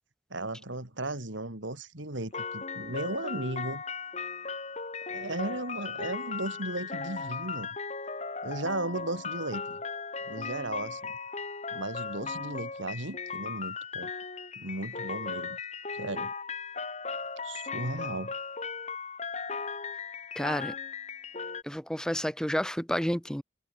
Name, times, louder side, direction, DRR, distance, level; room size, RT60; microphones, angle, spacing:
voice 1, 0.3-3.8 5.1-7.7 8.4-9.8 10.3-11.2 11.7-14.1 14.6-15.6 15.9-16.3 17.4-18.3, right 2 dB, 90° right, 4.0 m, -36 dB
sound 1, 2.3-21.6, left 5 dB, 35° left, 2.0 m, -37 dB
voice 2, 20.4-20.7 21.6-23.4, equal, 5° left, 2.1 m, -30 dB
head